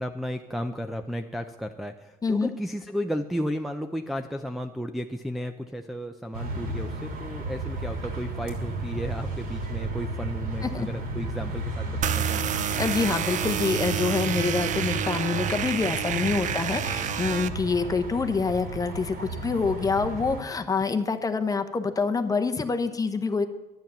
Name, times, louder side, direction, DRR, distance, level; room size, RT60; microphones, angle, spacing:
voice 1, 0.0-12.6, equal, ahead, 4 dB, 0.6 m, -33 dB
sound 1, 6.3-20.4, right 2 dB, 60° right, 3.2 m, -33 dB
sound 2, 12.0-17.5, right 9 dB, 45° right, 0.6 m, -29 dB
voice 2, 12.8-23.5, left 4 dB, 20° left, 8 dB, 0.9 m, -26 dB
11.5 x 9.2 x 6.9 m, 1.1 s
cardioid pair, 105°, 17 cm